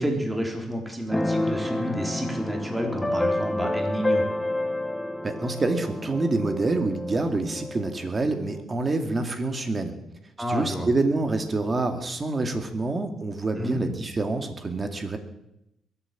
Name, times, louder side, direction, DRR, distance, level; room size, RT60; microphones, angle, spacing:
voice 1, 0.0-4.3 10.4-10.9 13.6-13.8, equal, 5° right, 2 dB, 3.7 m, -29 dB
Keyboard (musical), 1.1-8.6, left 1 dB, 10° left, 1.4 m, -29 dB
voice 2, 5.2-9.9 10.5-15.2, right 2 dB, 30° right, 6 dB, 2.4 m, -27 dB
22.0 x 8.6 x 7.5 m, 0.85 s
cardioid pair, 90°, 0 cm